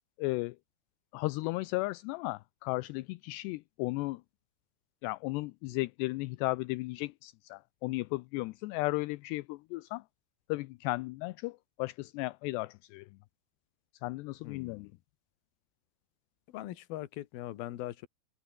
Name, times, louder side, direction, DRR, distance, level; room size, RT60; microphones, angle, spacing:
voice 1, 0.2-0.6 1.1-4.2 5.0-10.0 10.5-13.1 14.0-14.9, left 22 dB, 80° left, 2.6 m, -35 dB
voice 2, 14.4-14.9 16.5-18.1, left 15 dB, 65° left, 2.8 m, -41 dB
omnidirectional pair, 5.2 m